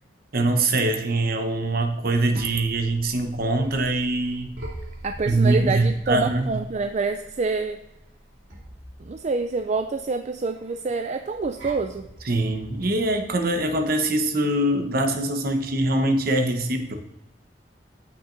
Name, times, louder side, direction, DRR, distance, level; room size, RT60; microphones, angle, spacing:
voice 1, 0.3-4.5 5.3-6.6 12.2-16.9, right 2 dB, 55° right, 6 dB, 1.1 m, -23 dB
sound 1, 1.9-13.8, right 1 dB, 90° right, 3.0 m, -43 dB
voice 2, 5.0-7.8 9.0-12.1, right 4 dB, 40° right, 7 dB, 0.4 m, -26 dB
14.5 x 6.1 x 2.6 m, 0.91 s
head